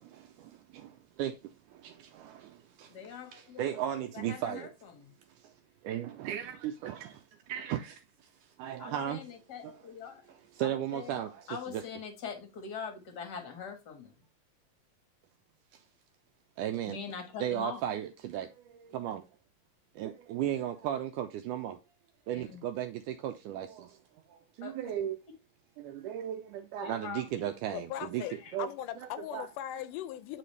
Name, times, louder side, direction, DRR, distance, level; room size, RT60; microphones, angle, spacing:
voice 1, 0.0-3.0 3.3-4.7 5.4-5.5 5.8-8.0 8.6-9.2 10.6-11.3 11.7-11.8 16.6-17.0 17.4-19.3 20.0-21.8 22.3-24.0 24.3-25.2 25.8-28.7 29.3-29.5, right 10 dB, 80° right, 1.9 m, -36 dB
voice 2, 2.9-3.9 4.1-5.1 8.8-10.2 10.6-14.2 16.9-17.9 22.3-22.6 24.6-24.8 26.8-27.7 28.2-28.6, left 6 dB, 50° left, 1.2 m, -43 dB
voice 3, 27.7-30.4, left 12 dB, 80° left, 2.0 m, -39 dB
9.0 x 4.2 x 3.2 m
omnidirectional pair, 4.0 m